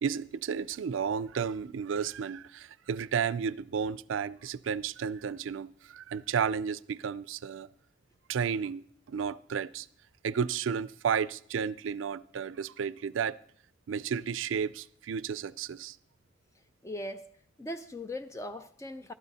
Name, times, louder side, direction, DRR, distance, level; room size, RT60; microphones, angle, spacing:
voice 1, 0.0-7.7 8.3-9.9 10.2-13.4 13.9-16.0, right 7 dB, 85° right, 0.4 m, -32 dB
voice 2, 16.8-17.2 17.6-19.1, left 1 dB, 15° left, 0.4 m, -39 dB
12.5 x 12.0 x 4.1 m
head